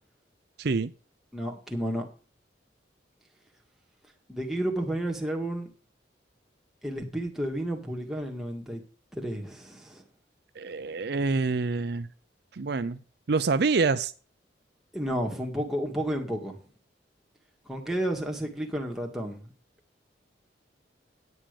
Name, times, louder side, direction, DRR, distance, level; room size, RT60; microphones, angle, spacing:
voice 1, 0.6-0.9 10.6-12.1 12.5-13.0 13.3-14.1, right 4 dB, 60° right, 12 dB, 0.5 m, -26 dB
voice 2, 1.3-2.1 4.3-5.7 6.8-8.8 9.1-10.0 14.9-16.6 17.7-19.5, right 1 dB, ahead, 0 dB, 1.9 m, -31 dB
9.5 x 8.8 x 5.1 m, 0.38 s
head